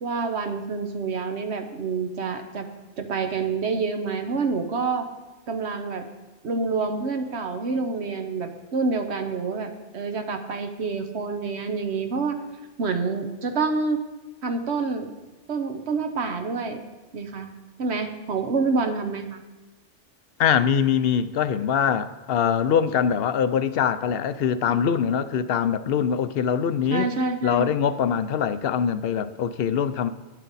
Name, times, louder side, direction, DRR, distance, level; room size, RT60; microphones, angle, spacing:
voice 1, 0.0-2.7 3.0-5.1 5.5-6.1 6.4-12.4 12.8-14.0 14.4-15.1 15.5-16.8 17.1-17.5 17.8-19.4 26.9-27.8, right 4 dB, 70° right, 1.2 m, -27 dB
voice 2, 20.4-27.1 27.4-30.1, left 8 dB, 65° left, 0.7 m, -23 dB
12.0 x 10.0 x 4.1 m
omnidirectional pair, 1.2 m